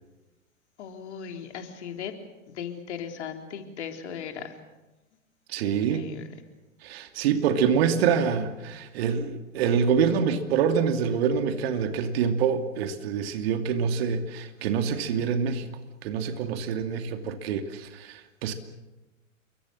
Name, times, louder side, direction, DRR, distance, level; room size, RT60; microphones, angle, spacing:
voice 1, 0.8-2.1 2.5-4.6 5.6-6.3, left 7 dB, 55° left, 5 dB, 3.6 m, -38 dB
voice 2, 5.5-6.1 6.8-15.7 16.0-18.5, right 7 dB, 50° right, 7 dB, 2.7 m, -26 dB
28.0 x 23.5 x 6.5 m, 1.1 s
figure-of-eight pair, 105°, 40 cm